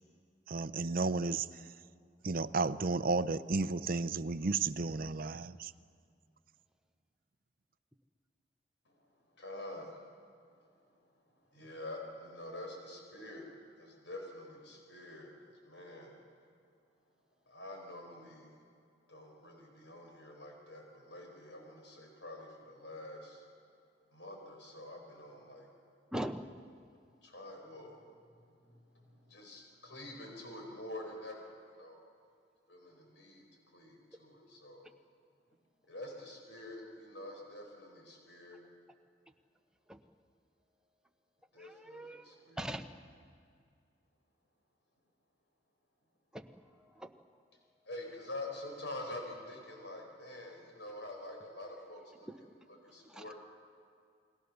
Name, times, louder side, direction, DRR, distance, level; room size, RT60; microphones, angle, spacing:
voice 1, 0.5-1.5 2.2-5.7, right 3 dB, 55° right, 14 dB, 0.6 m, -33 dB
voice 2, 9.4-10.0 11.5-13.5 13.8-16.2 17.5-18.5 19.1-23.5 24.1-25.7 27.2-28.0 28.4-31.5 31.8-32.0 32.7-33.4 33.7-34.9 35.9-38.6 41.5-42.6 47.9-53.3, left 1 dB, 90° left, 1 dB, 5.3 m, -47 dB
voice 3, 26.1-26.5 39.9-40.0 41.6-42.9 46.3-46.5 46.8-47.1 52.3-52.4 53.0-53.3, right 1 dB, 5° right, 5 dB, 1.0 m, -42 dB
29.0 x 20.5 x 6.8 m, 2.3 s
head